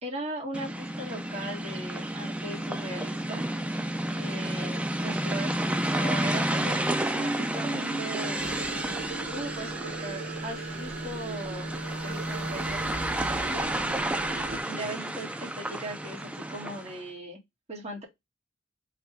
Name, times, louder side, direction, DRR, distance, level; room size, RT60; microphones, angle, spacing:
voice 1, 0.0-3.4 4.1-8.4 9.3-11.7 12.0-13.7 14.6-17.4 17.7-18.0, right 1 dB, 35° right, 1.7 m, -38 dB
sound 1, 0.5-17.0, right 1 dB, 5° right, 0.3 m, -31 dB
sound 2, 8.4-14.6, right 4 dB, 80° right, 0.9 m, -39 dB
4.1 x 2.6 x 4.7 m
head